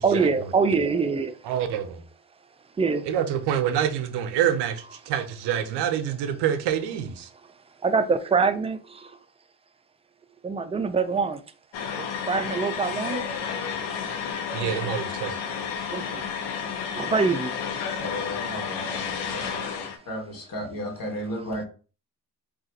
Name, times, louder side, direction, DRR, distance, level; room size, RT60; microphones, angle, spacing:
voice 1, 0.0-1.4 2.8-3.0 7.8-9.2 10.4-11.4 12.0-13.2 14.6-14.7 15.9-16.2 16.9-17.5 19.3-19.6, right 5 dB, 15° right, 0.4 m, -24 dB
voice 2, 1.4-2.0 3.1-7.3 14.5-15.4, right 9 dB, 85° right, 0.6 m, -26 dB
sound 1, 11.7-20.0, left 6 dB, 90° left, 0.6 m, -31 dB
voice 3, 18.0-21.7, left 1 dB, 55° left, 1.4 m, -34 dB
2.5 x 2.4 x 3.9 m
supercardioid pair, 55°, 40 cm